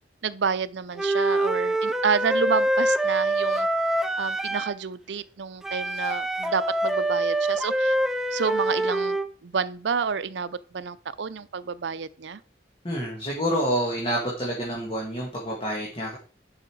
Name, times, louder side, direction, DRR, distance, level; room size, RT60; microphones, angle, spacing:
voice 1, 0.2-3.7 4.2-8.0 8.3-12.4, right 6 dB, 75° right, 0.5 m, -29 dB
Wind instrument woodwind instrument, 1.0-4.8 5.6-9.3, right 1 dB, 5° right, 0.5 m, -25 dB
voice 2, 12.8-16.2, equal, 30° left, 2.0 m, -28 dB
11.0 x 5.6 x 4.6 m
head